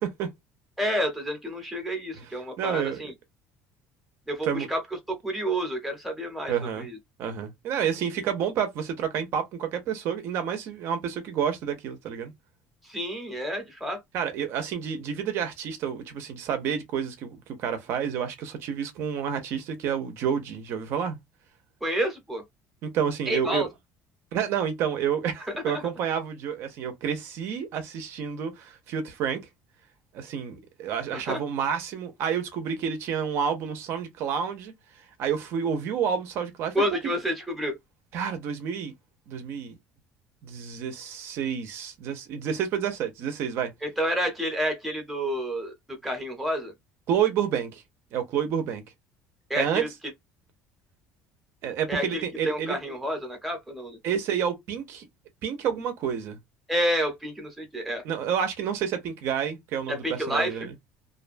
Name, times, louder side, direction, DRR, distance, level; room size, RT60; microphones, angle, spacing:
voice 1, 0.8-3.1 4.3-4.8 5.1-6.5 6.8-7.0 12.8-14.0 21.8-22.4 23.3-23.7 25.6-25.8 31.1-31.4 36.7-37.8 43.8-46.7 49.5-49.9 51.9-54.0 56.7-58.0 59.9-60.6, equal, ahead, 0.7 m, -29 dB
voice 2, 2.6-3.1 4.4-4.7 6.5-6.9 7.2-12.3 14.1-21.2 22.8-23.7 24.3-29.4 30.1-36.8 38.1-38.9 39.3-39.8 40.4-43.7 47.1-47.8 48.1-48.8 49.6-49.8 51.6-52.8 54.0-55.1 55.4-56.4 58.0-60.7, right 8 dB, 50° right, 0.5 m, -29 dB
2.5 x 2.1 x 2.4 m
cardioid pair, 175°, 5 cm